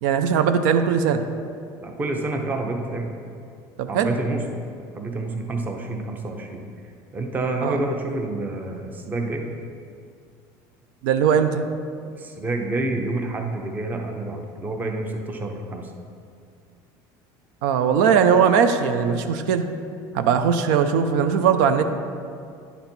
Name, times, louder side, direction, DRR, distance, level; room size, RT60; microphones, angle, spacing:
voice 1, 0.0-1.3 3.8-4.2 7.6-7.8 11.0-11.6 17.6-19.7 20.1-21.9, right 7 dB, 85° right, 8 dB, 0.5 m, -19 dB
voice 2, 1.8-3.1 3.9-4.4 4.9-6.6 7.1-9.4 12.2-15.9, right 2 dB, 20° right, 3 dB, 0.6 m, -28 dB
10.0 x 4.0 x 4.4 m, 2.3 s
cardioid pair, 160°, 10 cm